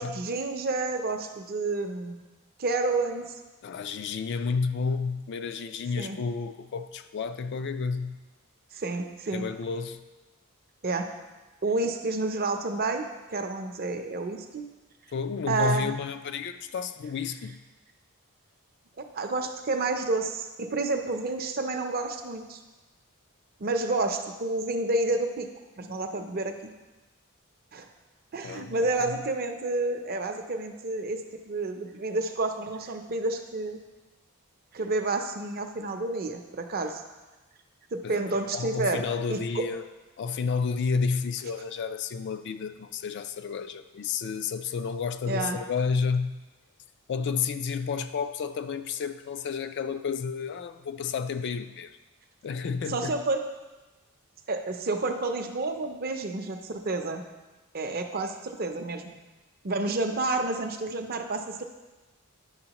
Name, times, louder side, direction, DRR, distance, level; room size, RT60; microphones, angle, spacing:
voice 1, 0.0-2.2 2.6-3.3 6.0-6.2 8.7-9.5 10.8-11.1 11.6-14.6 15.5-15.9 19.0-22.6 23.6-25.5 25.8-26.5 27.7-27.9 28.3-33.8 34.7-37.0 37.9-39.0 39.3-39.6 45.3-45.6 52.9-53.4 54.5-57.2 57.7-59.2 59.6-61.6, right 2 dB, 45° right, 6 dB, 0.6 m, -29 dB
voice 2, 3.6-8.2 9.3-10.0 15.1-17.6 28.4-29.2 38.0-38.2 38.5-39.8 40.2-46.4 47.1-52.0 52.4-53.2, left 5 dB, 50° left, 11 dB, 0.3 m, -31 dB
9.6 x 6.2 x 2.9 m, 1.1 s
head